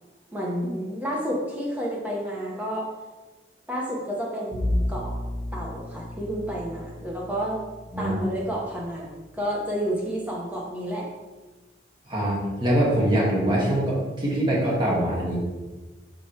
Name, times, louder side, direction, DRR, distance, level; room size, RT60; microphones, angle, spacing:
voice 1, 0.3-2.9 3.7-5.1 5.5-7.6 8.0-11.1, equal, 10° right, -4 dB, 1.4 m, -30 dB
Bowed string instrument, 4.5-9.6, left 1 dB, 90° right, 1.9 m, -33 dB
voice 2, 12.1-15.4, right 1 dB, 25° right, -5 dB, 1.7 m, -23 dB
7.0 x 5.4 x 3.1 m, 1.2 s
head